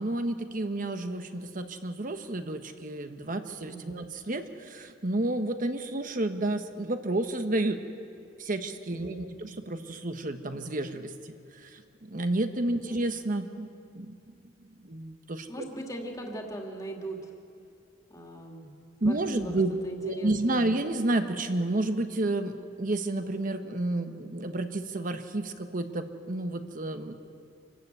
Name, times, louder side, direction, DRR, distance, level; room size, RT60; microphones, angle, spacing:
voice 1, 0.0-7.8 8.4-14.2 14.8-15.6 19.0-19.7 20.0-27.1, right 2 dB, 45° right, 7 dB, 1.1 m, -31 dB
voice 2, 3.6-4.1 9.0-9.5 12.8-13.2 15.5-17.2 18.1-18.7 19.0-19.5 19.8-20.7, right 1 dB, 20° left, 1 dB, 2.4 m, -40 dB
26.5 x 12.5 x 8.2 m, 2.5 s
head